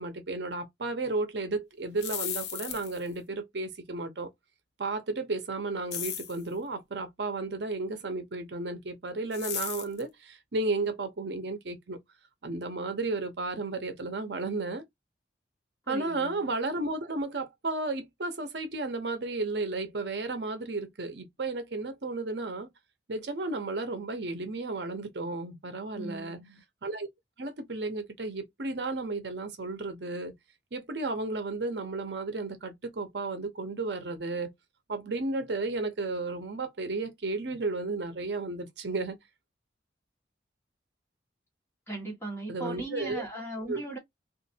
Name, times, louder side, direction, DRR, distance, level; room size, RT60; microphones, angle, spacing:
voice 1, 0.0-4.3 4.8-12.0 12.4-14.8 15.9-22.7 23.1-26.4 26.8-27.1 27.4-30.3 30.7-34.5 34.9-39.2 42.5-43.2 43.7-43.8, right 3 dB, 65° right, 0.7 m, -33 dB
sound 1, 1.8-3.1 5.9-6.4 9.3-10.0, left 9 dB, 65° left, 0.8 m, -35 dB
voice 2, 15.9-16.5 25.9-26.6 41.9-44.0, right 2 dB, 15° left, 1.7 m, -38 dB
3.8 x 2.5 x 2.7 m
head